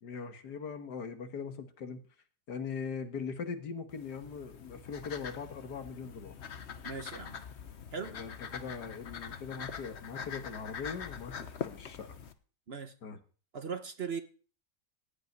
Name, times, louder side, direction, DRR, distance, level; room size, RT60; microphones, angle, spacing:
voice 1, 0.0-2.1 2.5-6.3 8.1-12.1 13.0-13.2, left 5 dB, 90° left, 2.0 m, -41 dB
sound 1, 3.9-12.3, left 7 dB, 50° left, 1.1 m, -44 dB
voice 2, 6.8-7.4 7.9-8.1 12.7-12.9 13.5-14.2, right 5 dB, 45° right, 1.1 m, -38 dB
16.5 x 5.5 x 9.3 m
omnidirectional pair, 1.7 m